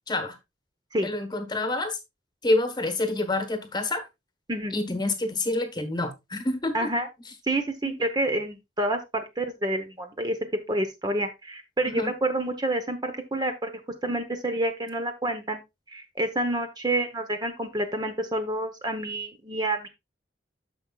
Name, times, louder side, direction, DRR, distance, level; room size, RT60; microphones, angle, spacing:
voice 1, 0.1-0.4 1.0-2.0 2.4-4.0 4.7-6.7 7.8-8.0 11.8-12.1, left 2 dB, 25° left, 8 dB, 1.2 m, -27 dB
voice 2, 6.7-7.1 7.5-10.4 10.7-13.7 14.0-15.6 15.9-19.9, right 1 dB, 25° right, 7 dB, 0.9 m, -28 dB
9.8 x 6.9 x 2.4 m, 0.21 s
head